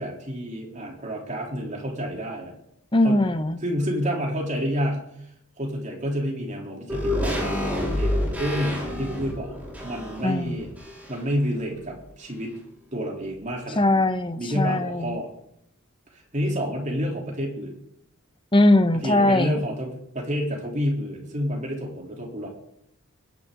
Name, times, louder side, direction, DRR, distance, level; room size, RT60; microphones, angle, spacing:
voice 1, 0.0-2.5 3.0-3.2 3.6-5.0 5.6-9.6 9.8-10.7 11.1-12.5 12.9-14.1 14.4-15.3 16.1-17.8 19.0-22.5, equal, 35° right, -1 dB, 3.7 m, -29 dB
voice 2, 2.9-3.6 10.2-10.6 13.8-15.2 18.5-19.6, left 1 dB, 25° left, 10 dB, 0.9 m, -20 dB
sound 1, 6.9-11.4 11.7-11.8, left 1 dB, 10° right, 4.8 m, -28 dB
21.0 x 10.5 x 4.0 m, 0.74 s
head